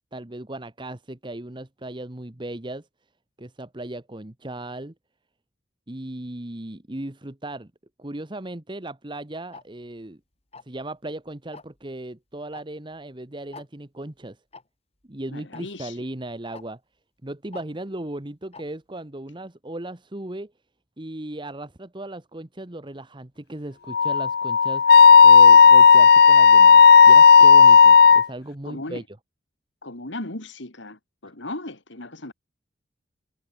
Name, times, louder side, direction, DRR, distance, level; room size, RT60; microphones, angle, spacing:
voice 1, 0.1-2.9 3.4-4.9 5.9-7.7 8.0-10.2 10.6-14.4 15.1-16.8 17.2-20.5 21.0-29.0, right 1 dB, 25° right, 1.2 m, -36 dB
Tick-tock, 9.5-9.6 10.5-10.8 11.5-11.8 12.5-12.6 12.9-13.0 13.5-13.7 14.5-14.6 15.5-15.6 16.5-16.6 17.5-17.6 18.5-18.6, left 4 dB, 35° left, 2.9 m, -42 dB
voice 2, 15.3-16.0 28.6-29.0 29.8-32.3, left 2 dB, 75° left, 3.4 m, -36 dB
Wind instrument woodwind instrument, 23.9-28.2, left 6 dB, 55° left, 0.6 m, -11 dB
head